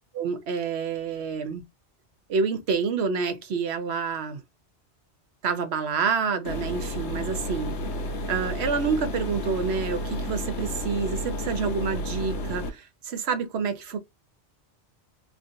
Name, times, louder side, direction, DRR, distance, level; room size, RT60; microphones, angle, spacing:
voice 1, 0.1-1.6 2.3-4.4 5.4-7.8 8.3-14.0, right 5 dB, 65° right, 1.1 m, -28 dB
sound 1, 6.5-12.7, equal, 80° left, 1.2 m, -31 dB
3.6 x 2.5 x 2.5 m
omnidirectional pair, 1.2 m